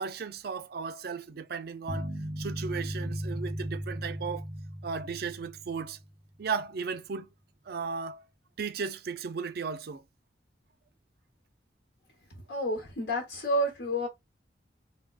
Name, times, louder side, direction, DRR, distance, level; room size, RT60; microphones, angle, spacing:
voice 1, 0.0-4.5 4.8-6.0 6.4-7.3 7.7-8.2 8.6-10.0, right 5 dB, 60° right, 0.4 m, -35 dB
sound 1, 1.9-6.1, equal, 5° left, 0.8 m, -36 dB
voice 2, 12.5-14.1, equal, 65° left, 1.0 m, -29 dB
3.5 x 2.3 x 2.3 m
head